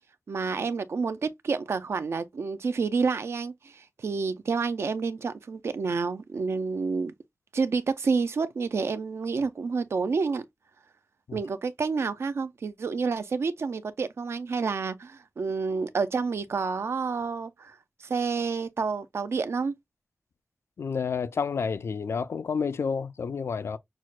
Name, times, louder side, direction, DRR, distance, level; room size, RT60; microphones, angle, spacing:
voice 1, 0.3-7.1 7.5-10.4 11.3-17.7 18.0-19.7, right 4 dB, 70° right, 0.5 m, -29 dB
voice 2, 20.8-23.8, left 5 dB, 70° left, 0.4 m, -30 dB
6.0 x 2.1 x 2.4 m
wide cardioid pair, 75°, 5 cm